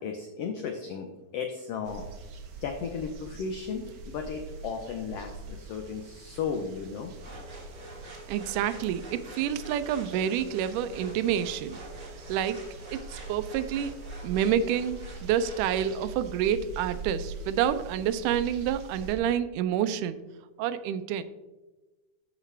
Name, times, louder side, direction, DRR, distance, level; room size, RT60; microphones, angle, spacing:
voice 1, 0.0-2.1 2.6-7.1, left 6 dB, 85° left, 4 dB, 1.3 m, -35 dB
sound 1, 1.8-19.2, right 3 dB, 75° right, 2.5 m, -43 dB
sound 2, 7.2-15.9, right 1 dB, 35° right, 2.5 m, -46 dB
voice 2, 8.3-11.8 12.3-12.6 12.9-13.9 14.2-20.2 20.6-21.2, right 9 dB, 90° right, 13 dB, 2.1 m, -28 dB
13.0 x 4.9 x 3.3 m, 1.1 s
omnidirectional pair, 3.6 m